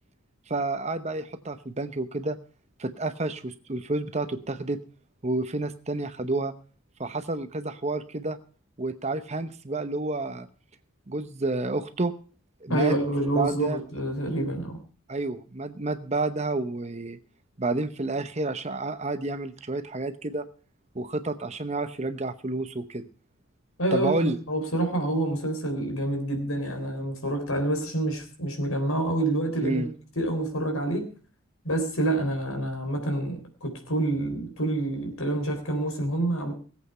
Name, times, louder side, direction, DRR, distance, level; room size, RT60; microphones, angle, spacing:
voice 1, 0.5-2.4 2.8-4.8 5.2-6.5 7.0-8.4 8.8-10.5 11.1-12.1 12.6-13.0 13.3-13.8 15.1-17.2 17.6-20.4 20.9-23.1 23.9-24.4 29.6-29.9, right 2 dB, 30° right, 10 dB, 0.8 m, -30 dB
voice 2, 12.7-14.8 23.8-29.9 30.2-31.1 31.6-36.5, right 1 dB, 75° left, 5 dB, 3.7 m, -27 dB
18.5 x 8.2 x 5.5 m, 0.39 s
head